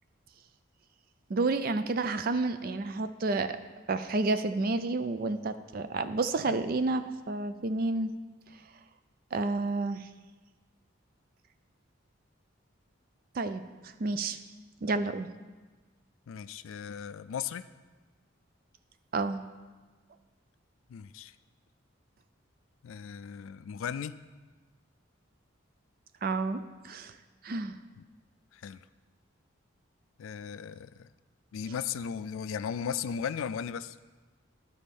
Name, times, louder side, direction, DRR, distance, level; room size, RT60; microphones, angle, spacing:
voice 1, 1.3-3.6 3.9-8.1 9.3-10.1 13.3-14.4 14.8-15.3 19.1-19.4 26.2-27.1 27.4-27.7, right 3 dB, 45° right, 11 dB, 0.4 m, -30 dB
voice 2, 16.3-17.6 20.9-21.3 22.8-24.2 28.0-28.1 28.5-28.8 30.2-31.1 31.5-34.0, left 7 dB, 75° left, 14 dB, 0.3 m, -36 dB
11.5 x 4.2 x 5.3 m, 1.3 s
head